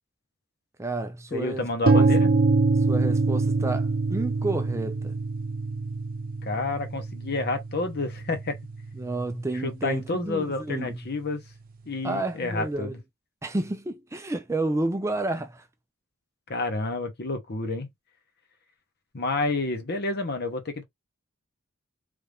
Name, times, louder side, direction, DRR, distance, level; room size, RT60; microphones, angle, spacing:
voice 1, 0.8-2.1 2.9-5.2 8.9-11.0 12.0-13.0 13.4-15.7, right 2 dB, 15° right, 0.4 m, -30 dB
voice 2, 1.3-2.3 6.4-8.6 9.6-11.4 11.9-13.0 16.5-17.9 19.1-20.8, left 3 dB, 50° left, 1.1 m, -29 dB
sound 1, 1.9-9.7, right 3 dB, 45° right, 0.7 m, -25 dB
3.4 x 2.6 x 3.4 m
head